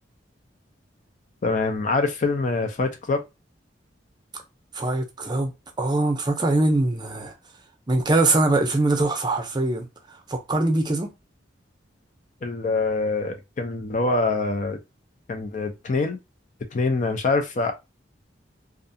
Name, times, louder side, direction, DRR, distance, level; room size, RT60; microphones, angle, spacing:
voice 1, 1.4-3.2 12.4-14.8 15.3-16.2 16.7-17.7, left 3 dB, 45° left, 0.4 m, -24 dB
voice 2, 4.7-7.3 7.9-11.1, right 2 dB, 25° right, 0.5 m, -23 dB
2.4 x 2.3 x 2.6 m
head